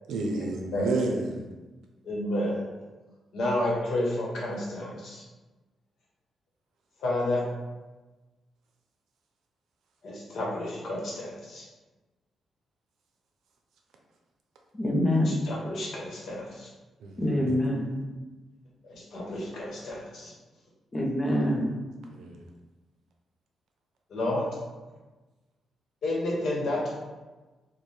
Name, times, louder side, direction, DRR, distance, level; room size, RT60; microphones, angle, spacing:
voice 1, 0.1-1.4 17.0-17.6 22.1-22.4, right 3 dB, 90° right, 1 dB, 0.6 m, -31 dB
voice 2, 2.0-2.6 3.3-5.2 7.0-7.4 10.0-11.6 15.3-16.7 18.9-20.3 24.1-24.5 26.0-26.8, left 1 dB, 55° left, -4 dB, 1.0 m, -30 dB
voice 3, 14.7-15.5 17.2-18.0 20.9-21.7, left 1 dB, 20° left, -2 dB, 0.6 m, -25 dB
4.3 x 2.2 x 3.2 m, 1.2 s
wide cardioid pair, 180°, 0 cm